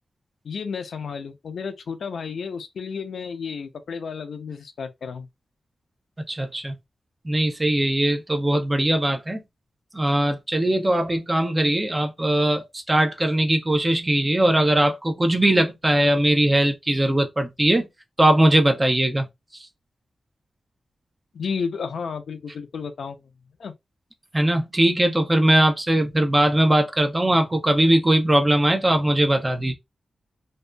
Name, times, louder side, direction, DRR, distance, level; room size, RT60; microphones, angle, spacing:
voice 1, 0.4-5.3 21.3-23.3 23.6-23.7, left 5 dB, 80° left, 0.5 m, -32 dB
voice 2, 6.3-6.7 7.2-9.4 9.9-17.9 18.2-19.3 19.5-19.7 24.3-29.7, right 1 dB, 25° right, 0.7 m, -20 dB
2.6 x 2.3 x 2.2 m
cardioid pair, 55°, 0 cm